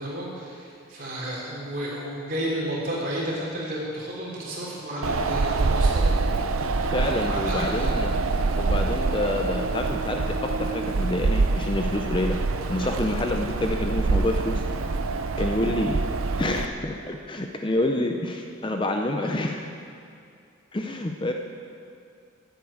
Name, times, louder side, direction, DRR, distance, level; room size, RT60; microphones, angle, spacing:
voice 1, 0.0-6.1 7.3-7.9, right 1 dB, 40° right, -5 dB, 3.4 m, -32 dB
Wind, 5.0-16.7, right 3 dB, 80° right, 0.6 m, -25 dB
voice 2, 6.9-8.2 8.5-12.4 12.7-14.6 15.4-16.0 16.4-19.7 20.7-21.3, left 1 dB, 25° left, 4 dB, 0.5 m, -27 dB
11.0 x 8.2 x 8.5 m, 2.4 s
head